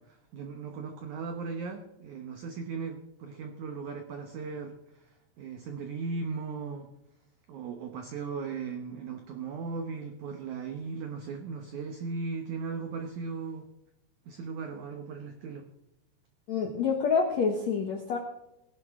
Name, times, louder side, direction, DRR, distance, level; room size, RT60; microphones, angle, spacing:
voice 1, 0.0-4.8 5.4-6.9 7.5-13.6 14.3-15.7, right 5 dB, 80° right, 5 dB, 1.7 m, -37 dB
voice 2, 16.5-18.2, left 5 dB, 75° left, 3 dB, 1.6 m, -27 dB
18.5 x 11.0 x 3.6 m, 0.88 s
omnidirectional pair, 5.0 m